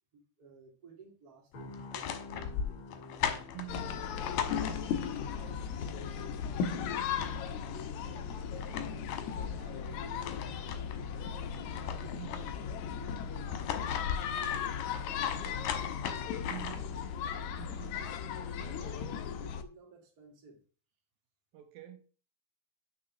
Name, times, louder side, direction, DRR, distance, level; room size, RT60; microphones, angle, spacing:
voice 1, 0.1-2.9 3.2-3.5 4.4-5.7 6.2-11.0 11.6-12.5 13.0-14.7 15.0-15.6 16.0-16.8 17.4-19.1 19.4-20.6, right 4 dB, 30° right, 1.9 m, -56 dB
sound 1, 1.5-15.5 15.9-16.1, left 3 dB, 45° left, 1.8 m, -54 dB
sound 2, 1.7-5.2 6.7-6.8 7.0-7.9 8.4-11.0 11.4-12.8 13.4-17.0, left 8 dB, 70° left, 2.4 m, -39 dB
voice 2, 3.5-4.1 12.0-12.4 16.5-16.9 17.6-18.0 21.5-22.0, right 16 dB, 75° right, 2.6 m, -46 dB
sound 3, 3.7-19.6, left 7 dB, 85° left, 1.6 m, -36 dB
6.3 x 6.0 x 6.1 m
omnidirectional pair, 4.3 m